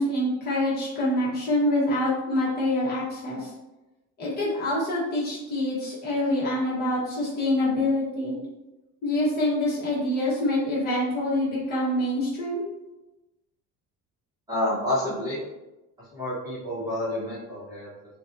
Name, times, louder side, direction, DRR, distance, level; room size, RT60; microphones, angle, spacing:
voice 1, 0.0-3.5 4.2-8.4 9.0-12.7, left 1 dB, 30° left, -8 dB, 1.4 m, -26 dB
voice 2, 14.5-15.4 16.1-17.9, left 1 dB, 10° right, -10 dB, 1.2 m, -29 dB
6.1 x 2.5 x 2.7 m, 1.0 s
cardioid pair, 180°, 31 cm